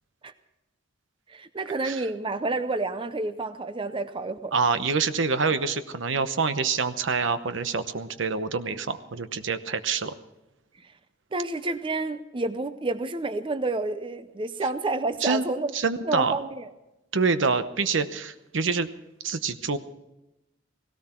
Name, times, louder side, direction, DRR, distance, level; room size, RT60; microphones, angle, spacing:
voice 1, 1.3-4.6 10.8-10.9 11.3-15.7 16.0-16.7, right 2 dB, 25° right, 11 dB, 0.6 m, -29 dB
voice 2, 4.5-10.1 15.2-15.5 15.7-16.3 17.1-18.9 19.2-19.8, right 4 dB, 70° right, 11 dB, 0.9 m, -26 dB
17.5 x 17.0 x 4.4 m, 0.96 s
head